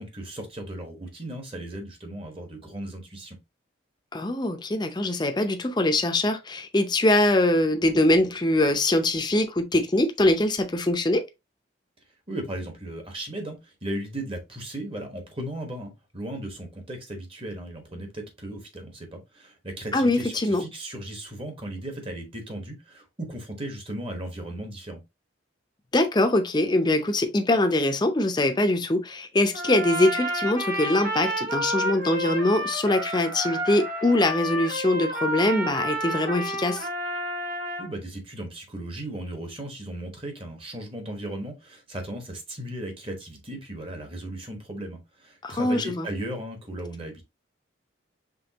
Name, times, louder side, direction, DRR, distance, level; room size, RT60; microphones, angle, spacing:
voice 1, 0.0-3.4 12.3-25.0 37.8-47.2, right 1 dB, 30° right, 1.2 m, -36 dB
voice 2, 4.1-11.2 19.9-20.6 25.9-36.9 45.4-46.1, left 1 dB, 20° left, 0.6 m, -23 dB
Trumpet, 29.5-37.9, equal, 45° right, 1.6 m, -30 dB
5.3 x 3.2 x 2.8 m
head